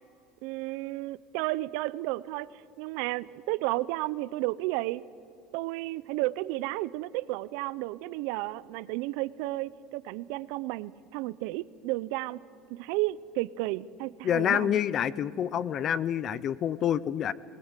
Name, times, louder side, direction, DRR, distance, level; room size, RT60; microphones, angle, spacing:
voice 1, 0.4-2.5 2.8-5.0 5.5-12.4 12.7-14.8, right 18 dB, 70° right, 19 dB, 0.5 m, -32 dB
voice 2, 14.2-17.3, left 9 dB, 35° left, 19 dB, 0.6 m, -27 dB
21.0 x 20.0 x 8.2 m, 2.7 s
cardioid pair, 150°, 0 cm